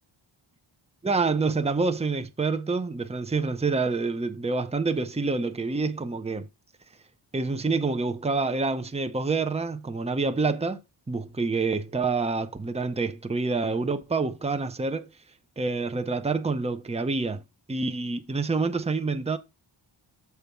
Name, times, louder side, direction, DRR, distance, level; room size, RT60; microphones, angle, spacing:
voice 1, 1.0-6.5 7.3-10.8 11.1-15.1 15.6-17.4 17.7-19.4, right 3 dB, 15° right, 0.7 m, -27 dB
7.1 x 4.8 x 4.5 m
wide cardioid pair, 105°, 49 cm